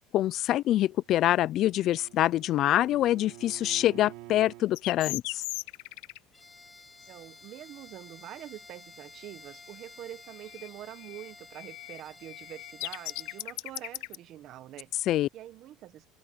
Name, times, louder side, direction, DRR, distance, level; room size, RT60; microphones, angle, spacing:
voice 1, 0.1-5.4 15.1-15.3, left 13 dB, 45° left, 0.3 m, -25 dB
Bowed string instrument, 0.9-4.7, right 19 dB, 70° right, 1.8 m, -49 dB
sound 1, 4.8-6.2 10.5-10.7 11.0-14.2, left 22 dB, 80° left, 0.7 m, -37 dB
Bowed string instrument 2, 6.3-13.5, left 3 dB, 10° left, 2.9 m, -52 dB
voice 2, 7.1-14.9 15.3-16.1, right 13 dB, 45° right, 1.3 m, -45 dB
cardioid pair, 145°, 0 cm